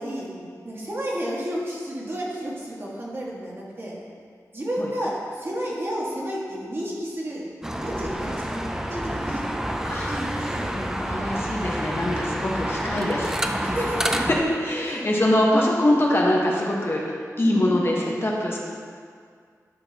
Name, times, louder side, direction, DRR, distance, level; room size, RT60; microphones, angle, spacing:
voice 1, 0.0-3.9 4.5-7.4 7.8-9.5 10.1-10.9 13.6-14.1 14.8-15.2 17.4-17.9, equal, 40° right, -5 dB, 1.7 m, -32 dB
sound 1, 7.6-14.4, equal, 10° right, 0.5 m, -28 dB
voice 2, 10.7-13.4 14.3-17.0 17.4-18.6, left 1 dB, 40° left, -3 dB, 1.2 m, -23 dB
10.5 x 6.5 x 2.9 m, 2.1 s
wide cardioid pair, 90°, 6 cm